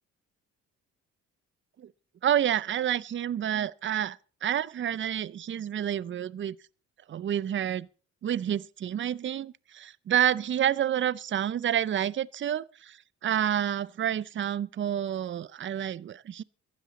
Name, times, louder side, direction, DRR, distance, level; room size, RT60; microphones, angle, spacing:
voice 1, 2.2-6.5 7.1-7.9 8.2-16.4, right 10 dB, 40° right, 0.6 m, -29 dB
14.5 x 12.5 x 4.1 m
cardioid pair, 90°, 30 cm